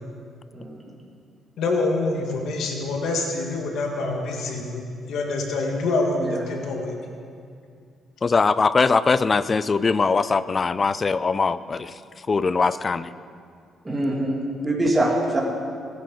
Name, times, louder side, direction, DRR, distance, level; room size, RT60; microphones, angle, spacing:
voice 1, 0.5-0.9 6.2-6.6 13.8-14.4 14.6-15.4, right 1 dB, 20° right, -3 dB, 2.7 m, -24 dB
voice 2, 1.6-4.8 5.1-7.0, left 3 dB, 80° left, 1 dB, 1.9 m, -26 dB
voice 3, 8.2-11.9 12.3-13.1, left 4 dB, 35° left, 16 dB, 0.4 m, -21 dB
20.5 x 10.5 x 4.0 m, 2.3 s
cardioid pair, 90°, 0 cm